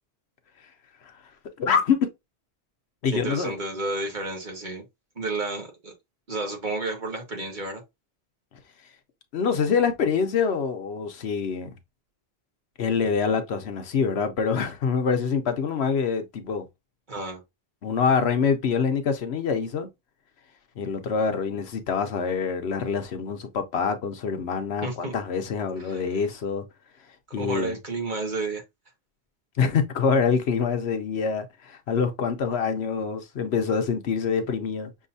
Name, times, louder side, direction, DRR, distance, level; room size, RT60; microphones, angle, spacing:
voice 1, 1.6-2.1 3.0-3.5 9.3-11.7 12.8-16.7 17.8-19.9 20.8-26.6 27.3-27.8 29.6-34.9, left 6 dB, 75° left, 1.0 m, -25 dB
voice 2, 3.1-4.8 5.1-5.9 6.3-7.8 17.1-17.4 24.8-25.1 25.8-26.1 27.4-28.6, right 2 dB, 45° right, 1.5 m, -31 dB
6.4 x 2.7 x 2.6 m
omnidirectional pair, 1.1 m